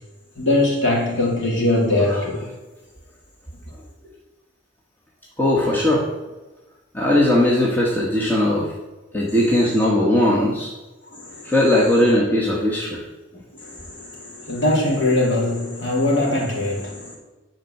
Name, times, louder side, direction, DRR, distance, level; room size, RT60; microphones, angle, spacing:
voice 1, 0.4-2.5 11.1-11.5 13.6-17.2, left 2 dB, 70° left, -2 dB, 2.7 m, -21 dB
voice 2, 5.4-6.0 6.9-8.7 9.1-10.7 11.4-13.0, left 1 dB, 10° left, -5 dB, 1.2 m, -19 dB
10.0 x 4.5 x 6.5 m, 1.2 s
head